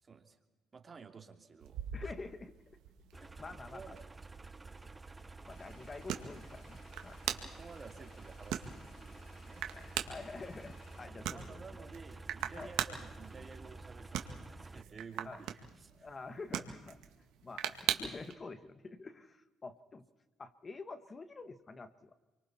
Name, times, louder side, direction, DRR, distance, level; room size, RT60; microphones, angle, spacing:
voice 1, 0.0-0.4 0.7-2.1 3.2-3.3 3.7-4.0 4.7-4.9 7.3-10.1 11.3-16.1, right 5 dB, 35° right, 4 dB, 2.9 m, -53 dB
sound 1, 1.6-18.3, right 10 dB, 85° right, 1.9 m, -43 dB
voice 2, 1.9-2.5 3.1-4.0 5.4-7.2 9.7-11.6 12.6-12.7 15.2-15.4 16.0-17.0 17.4-20.0 20.4-22.1, left 3 dB, 35° left, 11 dB, 1.4 m, -47 dB
sound 2, 3.1-14.8, right 3 dB, 20° right, 0.9 m, -51 dB
sound 3, 5.5-11.1, left 3 dB, 80° left, 7.0 m, -62 dB
29.5 x 24.0 x 4.3 m, 1.2 s
cardioid pair, 80°, 0 cm